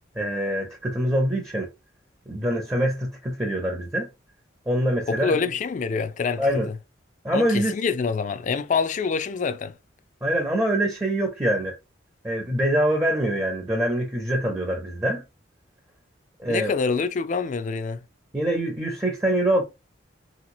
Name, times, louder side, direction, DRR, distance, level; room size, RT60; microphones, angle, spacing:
voice 1, 0.2-1.7 2.3-4.1 4.7-5.3 6.4-6.7 7.2-7.7 10.2-11.8 12.2-15.2 16.4-16.7 18.3-19.6, right 1 dB, 15° right, 0.5 m, -24 dB
voice 2, 5.1-6.8 7.3-9.8 16.5-18.0, left 5 dB, 40° left, 0.3 m, -26 dB
3.1 x 2.9 x 2.5 m
head